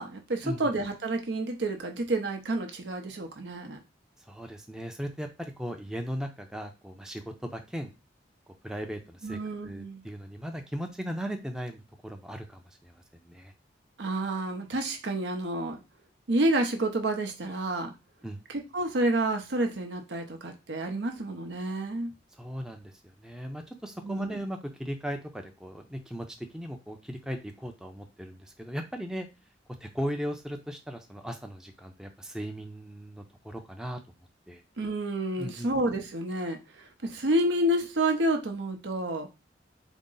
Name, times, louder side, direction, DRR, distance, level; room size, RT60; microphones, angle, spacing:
voice 1, 0.0-3.8 9.2-10.0 14.0-15.8 16.3-17.9 18.5-22.1 24.0-24.3 34.8-39.3, right 1 dB, 85° right, 4 dB, 0.7 m, -29 dB
voice 2, 4.3-7.9 8.6-13.5 18.2-18.4 22.4-22.9 23.2-29.3 29.8-34.0 34.5-34.6 35.4-35.8, equal, 5° right, 4 dB, 0.4 m, -37 dB
3.7 x 2.1 x 3.8 m, 0.27 s
head